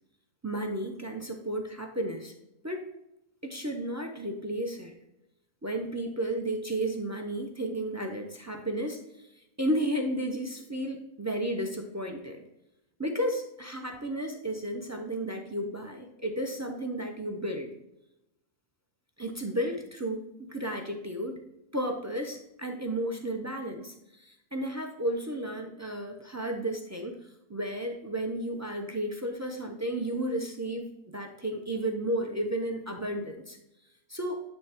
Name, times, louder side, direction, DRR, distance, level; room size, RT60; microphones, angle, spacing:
voice 1, 0.4-2.3 2.6-2.8 3.4-4.9 5.6-12.4 13.0-17.7 19.2-21.4 21.7-33.6 34.1-34.4, right 1 dB, 25° right, 4 dB, 0.4 m, -33 dB
8.9 x 3.3 x 4.4 m, 0.88 s
omnidirectional pair, 1.5 m